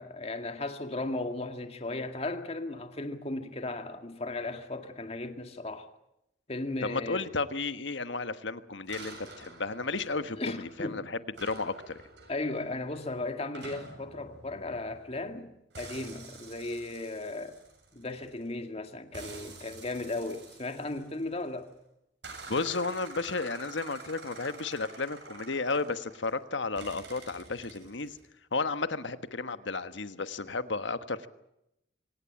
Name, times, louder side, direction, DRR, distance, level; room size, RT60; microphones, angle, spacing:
voice 1, 0.0-5.9 6.5-7.3 10.4-11.1 12.3-15.5 15.8-17.6 17.9-21.7, left 2 dB, 35° left, 2.1 m, -36 dB
voice 2, 6.8-12.0 22.5-28.2 28.5-31.3, left 3 dB, 80° left, 1.3 m, -33 dB
sound 1, 8.9-10.9 11.3-15.4 15.7-18.5 19.1-21.6 22.2-26.4 26.8-28.2, right 3 dB, 70° right, 7.1 m, -48 dB
25.0 x 18.0 x 8.8 m
head